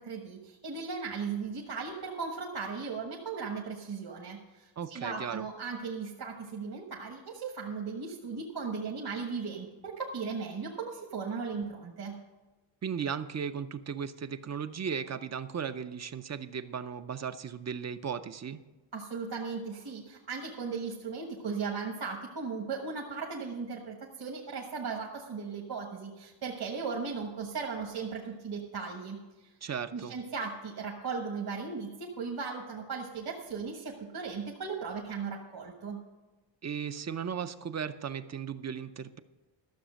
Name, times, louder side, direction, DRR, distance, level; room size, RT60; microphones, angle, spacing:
voice 1, 0.0-12.2 18.9-29.2 29.9-36.0, right 5 dB, 55° right, -1 dB, 1.4 m, -37 dB
voice 2, 4.8-5.5 12.8-18.6 29.6-30.1 36.6-39.2, right 7 dB, 35° right, 11 dB, 0.5 m, -36 dB
13.0 x 7.1 x 6.3 m, 1.2 s
wide cardioid pair, 145°, 45 cm